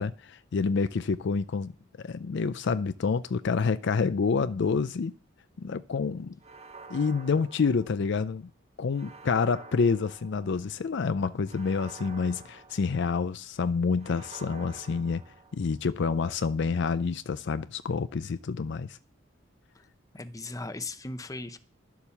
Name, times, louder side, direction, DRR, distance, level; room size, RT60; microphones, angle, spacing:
voice 1, 0.0-5.2 5.6-6.4 6.9-8.5 8.8-15.2 15.5-19.0, left 5 dB, 60° left, 0.4 m, -28 dB
sound 1, 6.4-8.3 8.9-10.7 11.4-13.3 14.0-15.9, right 4 dB, 30° right, 0.9 m, -49 dB
voice 2, 20.1-21.6, left 2 dB, 15° left, 0.8 m, -38 dB
11.5 x 7.1 x 7.0 m
head